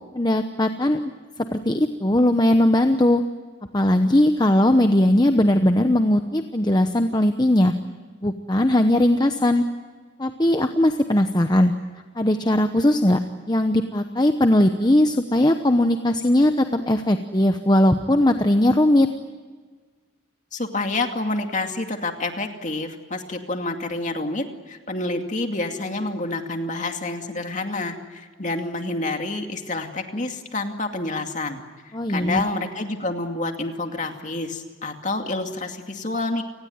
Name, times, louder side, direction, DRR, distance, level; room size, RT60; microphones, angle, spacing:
voice 1, 0.1-1.0 1.5-3.2 3.7-7.7 8.2-9.6 10.2-11.7 12.2-13.2 13.5-19.1 31.9-32.4, left 1 dB, 20° left, 7 dB, 0.9 m, -19 dB
voice 2, 20.5-31.6 32.1-36.4, left 2 dB, 40° left, 4 dB, 2.4 m, -28 dB
29.5 x 19.5 x 9.5 m, 1.5 s
head